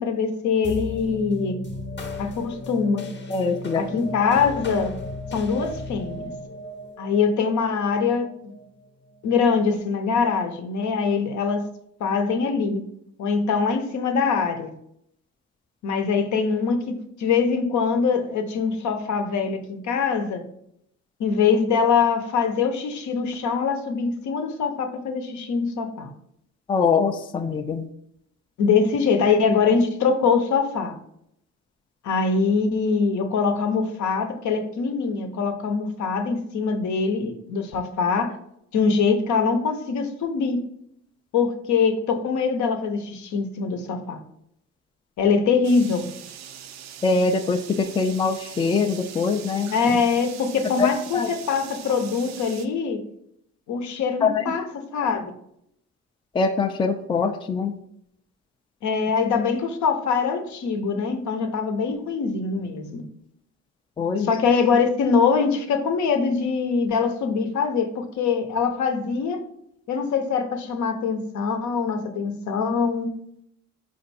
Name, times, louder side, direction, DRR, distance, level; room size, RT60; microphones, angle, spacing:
voice 1, 0.0-1.6 2.2-3.0 3.8-4.9 5.3-6.3 7.0-8.5 9.2-11.6 12.0-12.8 13.2-14.7 15.8-20.4 21.2-26.1 28.6-31.0 32.0-38.4 38.7-40.6 41.3-44.2 45.2-46.1 49.7-53.0 53.7-54.6 54.9-55.3 58.8-63.0 64.2-69.4 69.9-73.1, left 5 dB, 70° left, 6 dB, 0.7 m, -23 dB
sound 1, 0.6-9.4, left 2 dB, 35° left, 0.8 m, -36 dB
voice 2, 3.3-4.1 26.7-27.9 47.0-50.0 50.8-50.9 51.1-51.3 54.2-54.4 56.3-57.7 64.0-64.3, left 4 dB, 15° left, 7 dB, 0.3 m, -23 dB
sound 2, 45.6-52.7, right 9 dB, 65° right, 0.5 m, -41 dB
4.4 x 2.6 x 4.1 m, 0.73 s
cardioid pair, 90°, 30 cm